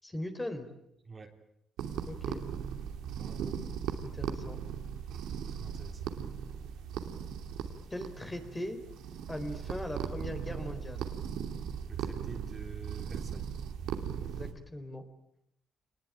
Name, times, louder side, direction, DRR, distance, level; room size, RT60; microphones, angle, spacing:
voice 1, 0.0-0.7 2.1-2.4 4.0-4.6 7.9-8.8 9.3-11.1 14.2-15.0, left 1 dB, 15° left, 7 dB, 4.1 m, -39 dB
sound 1, 1.8-14.5, right 8 dB, 85° right, 2.8 m, -38 dB
voice 2, 3.1-3.6 5.5-6.1 11.9-13.5, right 4 dB, 35° right, 4 dB, 3.5 m, -47 dB
26.5 x 20.5 x 9.1 m, 0.77 s
cardioid pair, 90°, 0 cm